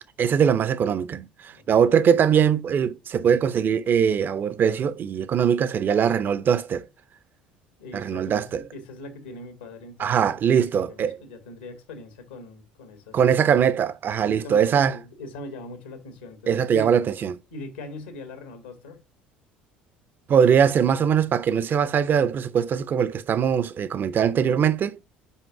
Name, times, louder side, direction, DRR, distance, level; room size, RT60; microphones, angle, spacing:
voice 1, 0.2-6.9 7.9-8.6 10.0-11.2 13.1-14.9 16.5-17.3 20.3-25.0, right 8 dB, 40° right, 0.6 m, -21 dB
voice 2, 1.5-2.0 7.8-13.2 13.7-13.8 14.2-16.9 17.5-19.0, left 1 dB, 80° left, 1.8 m, -41 dB
5.6 x 5.1 x 4.6 m
figure-of-eight pair, 60°, 5 cm